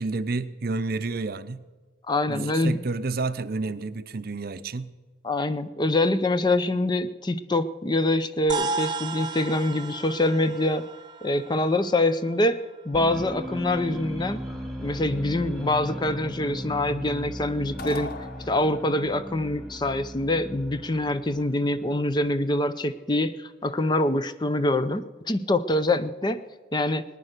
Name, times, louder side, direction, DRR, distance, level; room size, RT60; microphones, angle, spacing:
voice 1, 0.0-1.6 2.3-4.9, right 3 dB, 50° right, 13 dB, 0.6 m, -30 dB
voice 2, 2.1-2.8 5.2-10.8 11.2-12.6 12.9-14.4 14.8-18.1 18.5-26.4 26.7-27.0, left 1 dB, 25° left, 12 dB, 0.6 m, -25 dB
sound 1, 8.5-13.1, right 3 dB, 25° right, 1.0 m, -34 dB
sound 2, 12.9-22.5, equal, ahead, 1.7 m, -37 dB
sound 3, 17.8-19.1, left 3 dB, 50° left, 1.0 m, -38 dB
19.0 x 9.9 x 6.6 m, 1.3 s
head